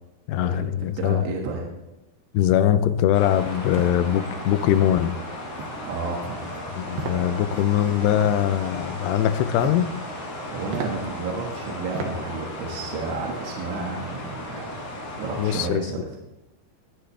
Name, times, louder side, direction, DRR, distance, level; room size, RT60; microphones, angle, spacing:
voice 1, 0.3-1.2 2.3-5.1 6.8-9.9 15.4-15.8, left 11 dB, 80° left, 12 dB, 2.6 m, -22 dB
voice 2, 1.0-1.7 5.8-6.5 6.9-7.4 10.5-14.9 15.2-16.0, right 4 dB, 90° right, -1 dB, 4.1 m, -32 dB
sound 1, 3.1-15.7, left 1 dB, 65° left, 6.2 m, -35 dB
sound 2, 3.4-4.0 4.5-4.7 4.9-5.2 5.6-5.9 6.2-6.6 7.0-7.2 7.5-8.4 9.3-9.9 10.3-10.4 10.7-10.9 11.5-11.6 11.9-12.1 12.5-12.9, right 5 dB, 65° right, 2.9 m, -35 dB
22.5 x 9.8 x 3.3 m, 0.94 s
omnidirectional pair, 5.3 m